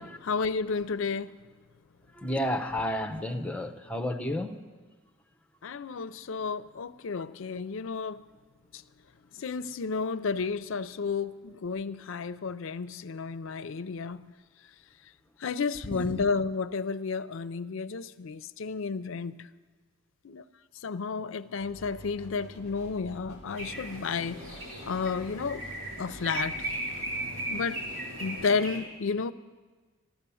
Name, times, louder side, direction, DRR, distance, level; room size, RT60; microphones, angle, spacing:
voice 1, 0.0-1.4 5.6-8.2 8.7-8.8 9.3-14.3 15.4-19.5 20.2-20.4 20.8-24.5 24.8-25.6 26.0-26.7 27.5-27.9 28.2-29.3, left 5 dB, 65° left, 0.5 m, -32 dB
voice 2, 2.1-4.6 15.9-16.2, left 1 dB, 5° left, 0.7 m, -31 dB
sound 1, 21.6-28.4, equal, 30° right, 4.3 m, -49 dB
sound 2, 23.5-28.8, right 1 dB, 75° right, 4.3 m, -37 dB
14.0 x 12.0 x 7.0 m
head